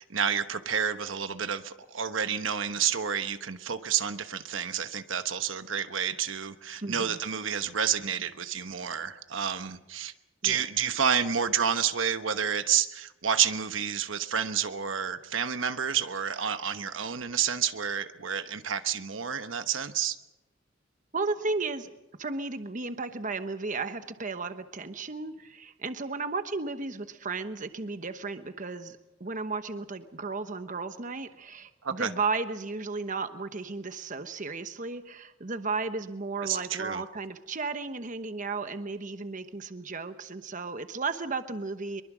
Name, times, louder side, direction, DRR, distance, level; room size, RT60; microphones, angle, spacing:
voice 1, 0.0-10.1 10.4-20.2 31.8-32.1 36.4-37.0, right 8 dB, 80° right, 9 dB, 1.1 m, -29 dB
voice 2, 6.8-7.2 10.4-10.6 21.1-21.9 22.2-42.0, right 3 dB, 40° right, 9 dB, 1.0 m, -34 dB
24.0 x 23.0 x 6.2 m, 0.99 s
head